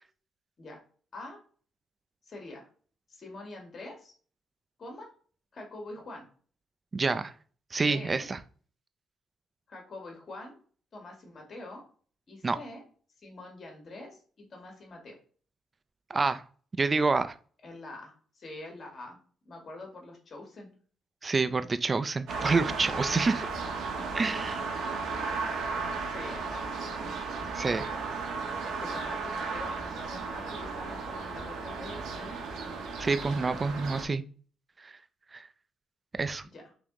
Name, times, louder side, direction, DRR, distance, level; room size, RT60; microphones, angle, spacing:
voice 1, 2.2-2.7 3.1-4.1 4.8-5.1 5.5-6.3 7.9-8.3 9.7-10.6 10.9-11.8 12.3-12.8 13.2-15.1 17.6-19.2 19.4-20.7 23.9-24.8 25.2-25.6 26.1-26.7 28.6-32.6 36.5-36.6, left 2 dB, 45° left, 1 dB, 1.3 m, -45 dB
voice 2, 6.9-7.3 7.7-8.4 12.4-12.6 16.1-16.4 16.8-17.3 21.2-23.5 24.1-24.6 27.5-27.9 33.0-34.2 34.8-34.9 35.3-35.5 36.2-36.4, right 4 dB, 30° right, 12 dB, 0.4 m, -27 dB
sound 1, 22.3-34.1, right 4 dB, 80° right, 0.8 m, -35 dB
3.5 x 2.9 x 3.6 m, 0.42 s
cardioid pair, 90°, 0 cm